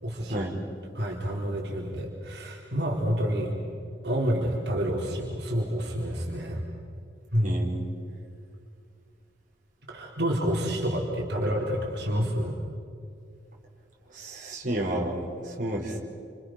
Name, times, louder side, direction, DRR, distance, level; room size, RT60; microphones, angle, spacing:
voice 1, 0.0-0.5 0.9-3.6 4.0-6.7 7.3-7.6 9.9-12.6, equal, 65° right, -2 dB, 4.2 m, -28 dB
voice 2, 7.4-7.9 14.1-16.0, right 1 dB, 45° right, -2 dB, 4.7 m, -31 dB
29.5 x 27.0 x 6.0 m, 2.4 s
head